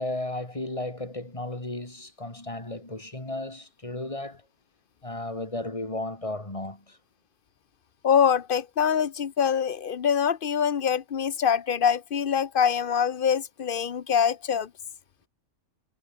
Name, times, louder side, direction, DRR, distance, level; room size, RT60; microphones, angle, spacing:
voice 1, 0.0-4.4 5.0-7.0, left 2 dB, 25° left, 3.5 m, -34 dB
voice 2, 8.0-14.7, left 7 dB, 50° left, 0.9 m, -24 dB
omnidirectional pair, 1.3 m